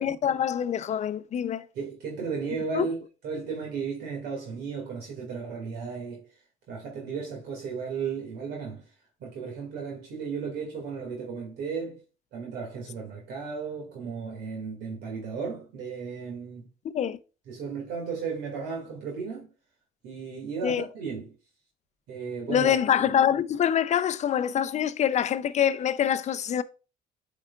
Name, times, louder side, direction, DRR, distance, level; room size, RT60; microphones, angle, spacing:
voice 1, 0.0-1.6 2.7-2.9 16.9-17.2 20.6-20.8 22.5-26.6, left 9 dB, 45° left, 0.5 m, -25 dB
voice 2, 1.7-3.0 3.2-6.2 6.7-8.8 9.2-12.0 12.3-16.7 17.5-19.5 20.0-21.3 22.1-22.7, right 5 dB, 80° right, 2.1 m, -34 dB
8.9 x 4.8 x 2.4 m
cardioid pair, 110°, 17 cm